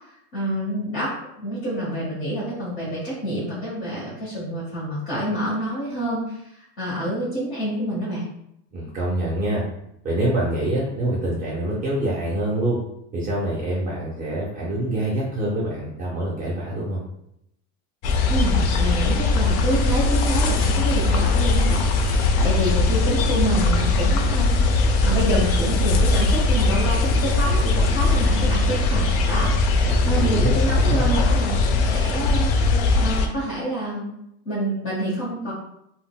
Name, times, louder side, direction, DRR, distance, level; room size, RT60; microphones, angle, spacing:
voice 1, 0.3-8.3 18.3-29.5 30.1-32.5 33.0-34.1 34.4-35.5, right 1 dB, 30° left, -9 dB, 0.9 m, -27 dB
voice 2, 8.7-9.6 10.0-12.8 13.1-17.0 29.9-31.0, right 1 dB, 20° right, -6 dB, 0.4 m, -25 dB
sound 1, 18.0-33.3, left 3 dB, 85° left, 0.6 m, -20 dB
3.7 x 2.1 x 2.2 m, 0.78 s
cardioid pair, 160°, 42 cm